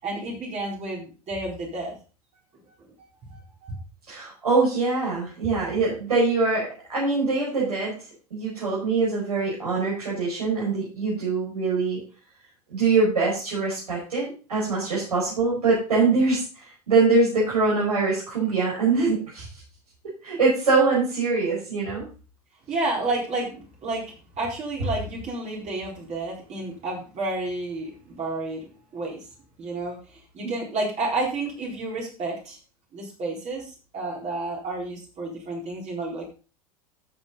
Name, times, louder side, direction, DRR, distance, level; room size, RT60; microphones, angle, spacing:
voice 1, 0.0-1.9 3.0-3.8 22.7-24.0 24.4-28.6 28.9-29.2 29.6-30.0 30.3-32.6 32.9-33.6 33.9-36.3, right 2 dB, 35° right, -2 dB, 4.2 m, -30 dB
voice 2, 4.1-8.0 8.3-12.0 12.7-16.4 16.9-19.5 20.2-22.1 30.4-30.5, right 3 dB, 75° right, -6 dB, 5.7 m, -23 dB
13.0 x 7.3 x 4.0 m, 0.35 s
figure-of-eight pair, 80°, 20 cm